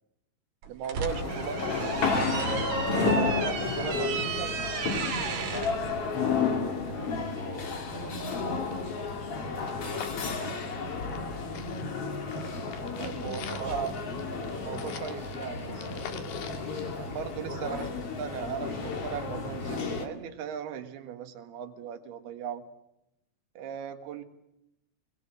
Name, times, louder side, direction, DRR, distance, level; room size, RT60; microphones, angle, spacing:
sound 1, 0.6-5.7, right 5 dB, 50° right, 4.0 m, -34 dB
voice 1, 0.7-2.4 3.4-4.7 13.0-13.9 14.3-16.2 16.9-17.8 18.2-22.7 23.6-24.2, right 8 dB, 65° right, 7 dB, 3.6 m, -38 dB
sound 2, 1.1-20.1, left 4 dB, 40° left, 2.6 m, -32 dB
voice 2, 3.8-4.2 5.2-9.2 9.5-11.0 13.4-14.0 17.5-17.9, right 1 dB, 15° left, 5 dB, 3.3 m, -42 dB
sound 3, 7.4-7.5 7.7-7.8 8.1-11.3 11.5-17.6 18.0-18.1, left 8 dB, 65° left, 3.4 m, -46 dB
25.5 x 21.5 x 7.8 m, 0.85 s
omnidirectional pair, 5.2 m